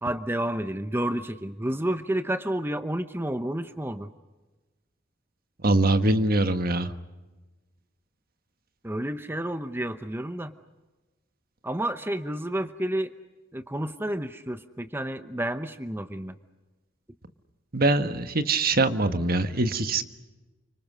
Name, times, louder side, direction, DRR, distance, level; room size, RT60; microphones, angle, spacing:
voice 1, 0.0-4.1 8.8-10.5 11.6-13.1 13.5-16.4, right 1 dB, 10° right, 10 dB, 0.9 m, -30 dB
voice 2, 5.6-6.9 17.7-20.0, right 2 dB, 55° right, 9 dB, 1.5 m, -23 dB
30.0 x 25.5 x 6.3 m, 1.2 s
head